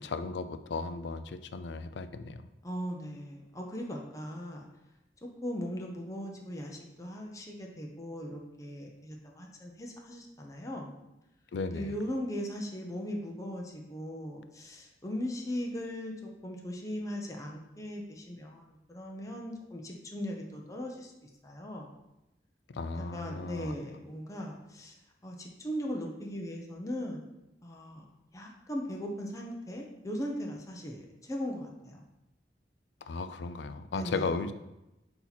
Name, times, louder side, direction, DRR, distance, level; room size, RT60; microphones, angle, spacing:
voice 1, 0.0-2.5 11.5-12.0 22.7-23.8 33.0-34.5, left 4 dB, 80° left, 11 dB, 0.4 m, -36 dB
voice 2, 2.6-4.7 5.2-10.9 11.7-21.9 22.9-25.0 25.2-27.2 27.6-28.0 28.3-32.0 33.9-34.3, equal, 20° left, 0 dB, 0.7 m, -39 dB
8.3 x 2.9 x 4.0 m, 0.94 s
head